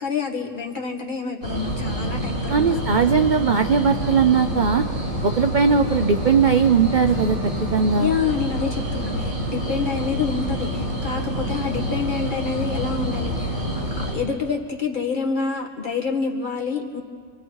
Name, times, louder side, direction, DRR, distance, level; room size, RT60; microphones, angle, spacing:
voice 1, 0.0-2.8 8.0-13.6 14.0-17.0, left 5 dB, 35° left, 1 dB, 2.1 m, -27 dB
sound 1, 1.4-14.1, equal, 65° right, 5.8 m, -27 dB
voice 2, 2.5-4.9 5.2-8.1, right 6 dB, 45° right, 8 dB, 0.6 m, -19 dB
Acoustic guitar / Strum, 7.1-10.3, left 1 dB, 25° right, 5.3 m, -41 dB
27.0 x 24.5 x 4.7 m, 2.1 s
omnidirectional pair, 1.5 m